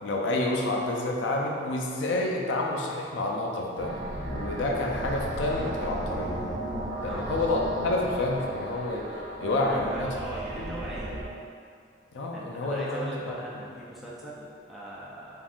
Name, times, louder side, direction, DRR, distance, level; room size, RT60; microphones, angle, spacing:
voice 1, 0.0-6.4 7.0-9.1 9.4-10.1 10.6-10.7 12.1-13.3, left 2 dB, 85° left, 0 dB, 0.4 m, -29 dB
sound 1, 3.8-11.2, right 1 dB, 80° right, 0.6 m, -35 dB
voice 2, 9.5-11.2 12.3-15.4, right 1 dB, ahead, -7 dB, 0.3 m, -40 dB
3.4 x 2.5 x 2.4 m, 2.3 s
head